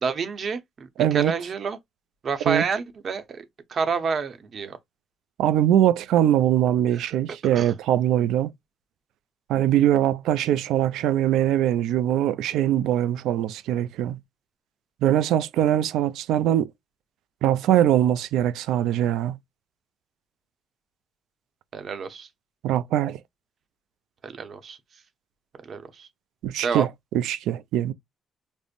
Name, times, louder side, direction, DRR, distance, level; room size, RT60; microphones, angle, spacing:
voice 1, 0.0-1.8 2.2-3.4 3.7-4.8 7.0-7.1 7.4-7.7 21.7-22.3 24.2-24.8 25.7-26.1 26.6-26.9, right 5 dB, 50° right, 0.7 m, -29 dB
voice 2, 1.0-1.3 2.5-2.6 5.4-8.5 9.5-14.2 15.0-16.7 17.4-19.4 22.6-23.2 26.4-26.9 27.1-27.9, right 11 dB, 90° right, 0.3 m, -22 dB
5.2 x 2.0 x 2.5 m
cardioid pair, 90°, 0 cm